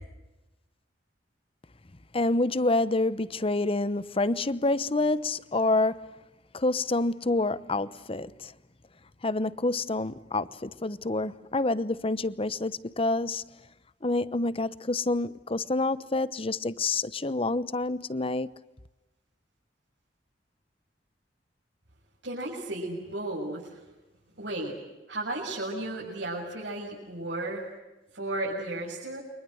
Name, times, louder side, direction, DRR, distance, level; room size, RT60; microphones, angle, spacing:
voice 1, 2.1-6.1 6.5-8.5 9.2-13.4 14.0-18.5, left 2 dB, 30° left, 0.9 m, -27 dB
voice 2, 22.2-23.8 24.4-24.7 25.1-27.6 28.1-29.2, right 2 dB, 80° right, 7.3 m, -34 dB
29.5 x 25.0 x 7.9 m
head